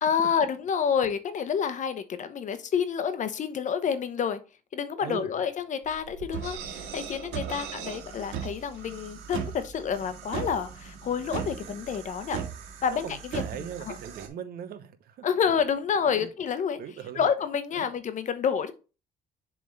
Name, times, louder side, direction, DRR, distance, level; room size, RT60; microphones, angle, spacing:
voice 1, 0.0-4.4 4.7-12.4 12.8-13.4 13.9-14.0 15.2-16.8 17.1-18.7, left 7 dB, 45° left, 1.0 m, -28 dB
voice 2, 5.0-5.3 7.4-7.7 12.9-15.3 16.1-16.3 16.8-17.2 17.7-17.9, right 8 dB, 65° right, 1.0 m, -40 dB
sound 1, 5.9-14.3, right 8 dB, 90° right, 1.8 m, -38 dB
7.1 x 3.7 x 4.0 m
cardioid pair, 110°, 17 cm